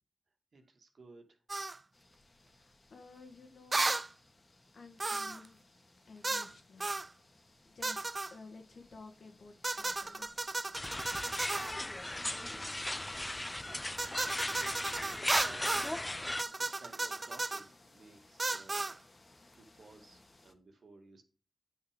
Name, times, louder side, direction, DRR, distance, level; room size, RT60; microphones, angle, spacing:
voice 1, 0.5-1.4 12.2-13.0 14.2-15.1 15.4-15.9 16.5-18.9 19.5-21.2, right 3 dB, 70° right, 3 dB, 2.3 m, -56 dB
sound 1, 1.5-1.8 3.7-4.1 5.0-5.5 6.2-6.5 6.8-7.1 7.8-8.3 9.6-11.8 14.0-15.9 16.4-17.6 18.4-19.0, right 2 dB, 40° right, 0.4 m, -34 dB
sound 2, 1.9-20.5, left 2 dB, 40° left, 2.0 m, -63 dB
voice 2, 2.5-4.0 4.7-5.6 6.1-6.9 7.7-8.0 8.3-10.5, left 4 dB, 75° left, 5 dB, 1.9 m, -54 dB
sound 3, 10.7-16.4, left 1 dB, 20° left, 0.6 m, -37 dB
9.1 x 5.7 x 5.3 m, 0.36 s
cardioid pair, 45°, 0 cm